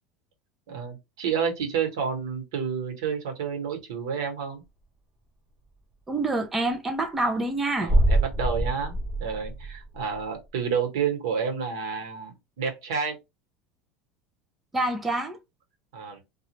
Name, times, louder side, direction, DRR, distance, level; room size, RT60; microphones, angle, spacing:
voice 1, 0.7-4.6 7.8-12.3 12.6-13.2 15.9-16.2, right 6 dB, 90° right, 1.2 m, -30 dB
voice 2, 6.1-7.9 14.7-15.4, right 2 dB, 10° right, 0.4 m, -27 dB
sound 1, 7.9-10.2, right 1 dB, 30° right, 1.1 m, -24 dB
2.4 x 2.3 x 2.9 m
supercardioid pair, 150°, 2 cm